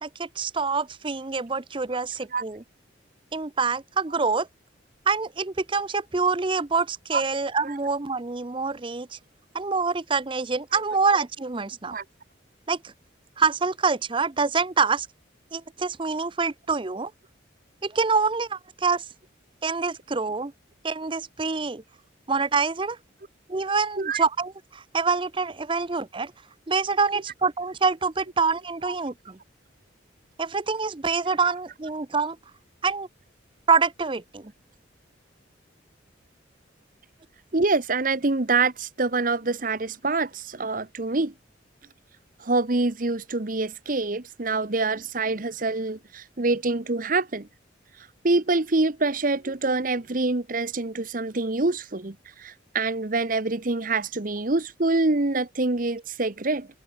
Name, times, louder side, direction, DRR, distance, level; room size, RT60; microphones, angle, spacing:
voice 1, 0.0-2.6 3.3-4.5 5.1-9.2 9.5-11.9 12.7-12.9 13.4-15.1 15.5-17.1 17.8-19.1 19.6-20.5 20.8-21.8 22.3-23.0 23.5-26.3 26.7-29.4 30.4-32.4 32.8-33.1 33.7-34.5, right 4 dB, 25° right, 0.6 m, -26 dB
voice 2, 37.5-41.3 42.4-47.5 48.2-56.7, right 3 dB, 45° right, 1.1 m, -25 dB
head